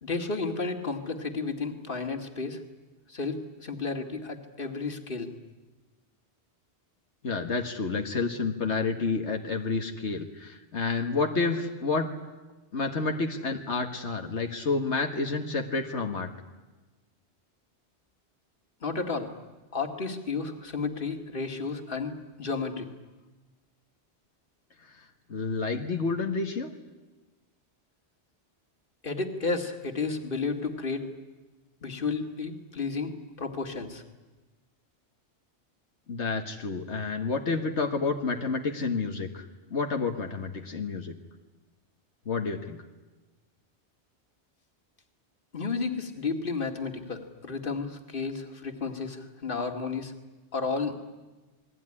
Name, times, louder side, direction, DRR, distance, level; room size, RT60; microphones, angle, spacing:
voice 1, 0.0-2.6 3.1-5.3 18.8-19.3 19.7-22.9 29.0-31.1 31.8-33.1 33.4-34.0 45.5-50.1 50.5-50.9, left 4 dB, 50° left, 5 dB, 2.3 m, -32 dB
voice 2, 7.2-12.1 12.7-16.3 25.3-26.7 36.1-39.5 39.7-41.2 42.3-42.8, left 4 dB, 80° left, 4 dB, 1.9 m, -29 dB
28.5 x 20.5 x 9.9 m, 1.2 s
omnidirectional pair, 1.1 m